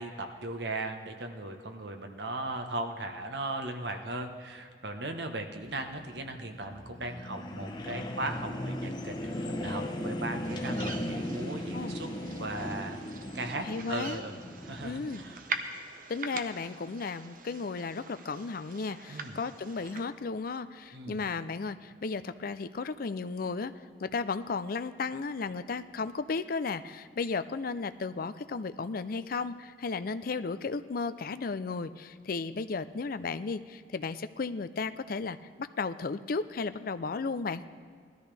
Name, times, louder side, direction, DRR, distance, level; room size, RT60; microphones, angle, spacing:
voice 1, 0.0-12.1 12.3-13.0 13.3-14.4 14.6-15.4 19.1-19.4 20.9-21.3, right 2 dB, 75° right, 5 dB, 1.2 m, -37 dB
sound 1, 5.6-15.4, left 1 dB, 25° left, 1.0 m, -37 dB
sound 2, 10.4-20.0, right 4 dB, 50° right, 0.9 m, -43 dB
voice 2, 13.6-14.2 14.8-15.2 16.1-23.7 24.0-37.6, left 4 dB, 55° left, 12 dB, 0.5 m, -34 dB
19.5 x 13.5 x 3.4 m, 2.1 s
head